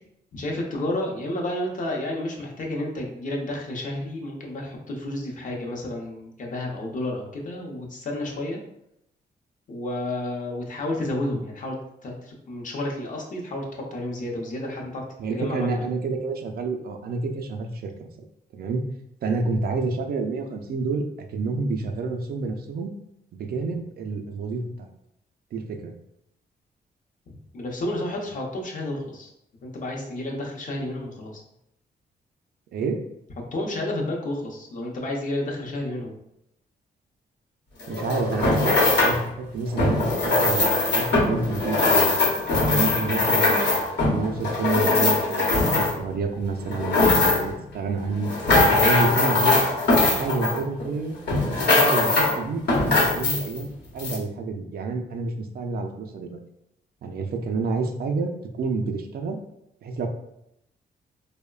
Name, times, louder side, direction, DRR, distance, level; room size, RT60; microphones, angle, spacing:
voice 1, 0.3-8.6 9.7-11.8 12.0-15.0 15.3-15.8 27.3-29.3 29.6-31.4 33.5-36.2, left 1 dB, 50° left, -1 dB, 0.6 m, -31 dB
voice 2, 15.2-18.1 18.5-18.9 19.2-21.0 21.3-22.9 23.3-24.9 25.5-25.9 32.7-33.0 37.9-42.1 42.7-48.3 48.7-49.7 50.2-51.2 51.5-56.4 57.0-59.4 59.8-60.1, right 3 dB, 65° right, 4 dB, 0.4 m, -29 dB
sound 1, 37.8-39.2 39.7-46.1 46.6-47.6 48.1-50.9 51.3-52.4 52.7-53.6 54.0-54.2, left 2 dB, 75° left, 0.9 m, -21 dB
2.9 x 2.0 x 2.3 m, 0.79 s
cardioid pair, 100°, 17 cm